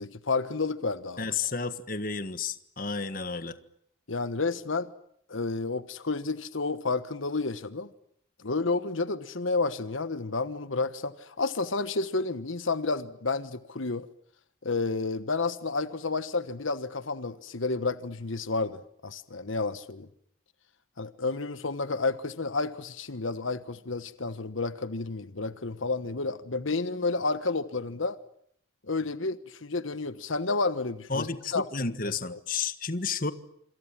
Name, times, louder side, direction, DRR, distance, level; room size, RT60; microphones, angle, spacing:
voice 1, 0.0-1.3 4.1-4.9 5.3-7.9 8.4-14.1 14.6-20.1 21.0-28.2 28.9-31.3 31.5-32.4, left 3 dB, 85° left, 1.3 m, -31 dB
voice 2, 1.2-3.5 31.1-33.3, left 4 dB, 45° left, 1.6 m, -32 dB
27.0 x 27.0 x 7.4 m
head